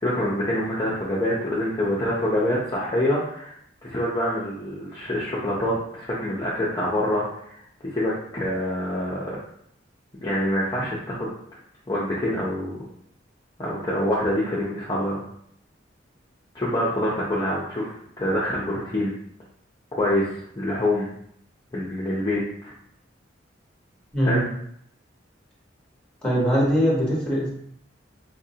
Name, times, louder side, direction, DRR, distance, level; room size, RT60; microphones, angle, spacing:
voice 1, 0.0-3.5 3.8-7.5 7.9-9.4 10.2-11.3 11.9-12.8 13.6-15.2 16.5-19.1 20.0-20.3 20.6-21.1 21.7-22.7 24.2-24.5, left 1 dB, 20° left, -7 dB, 0.6 m, -26 dB
voice 2, 26.2-27.5, equal, 5° left, -5 dB, 1.1 m, -21 dB
4.0 x 2.5 x 2.7 m, 0.69 s
head